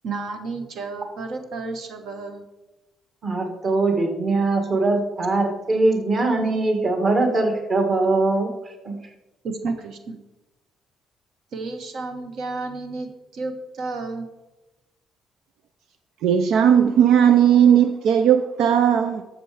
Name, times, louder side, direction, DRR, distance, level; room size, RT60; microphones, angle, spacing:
voice 1, 0.0-2.4 9.4-10.2 11.5-14.3, right 3 dB, 55° right, 1.3 m, -32 dB
voice 2, 3.2-8.5 8.8-9.0, right 2 dB, 30° right, 1.8 m, -21 dB
voice 3, 16.2-19.2, right 9 dB, 75° right, 0.6 m, -16 dB
13.0 x 6.9 x 4.9 m
cardioid pair, 165°, 0 cm